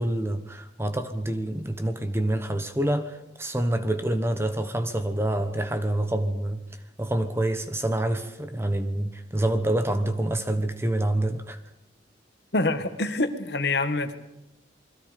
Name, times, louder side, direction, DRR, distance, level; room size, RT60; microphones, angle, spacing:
voice 1, 0.0-6.6 7.0-11.6, right 1 dB, 15° right, 1.1 m, -27 dB
voice 2, 12.5-14.1, left 2 dB, 60° left, 1.8 m, -26 dB
28.5 x 21.5 x 5.3 m
head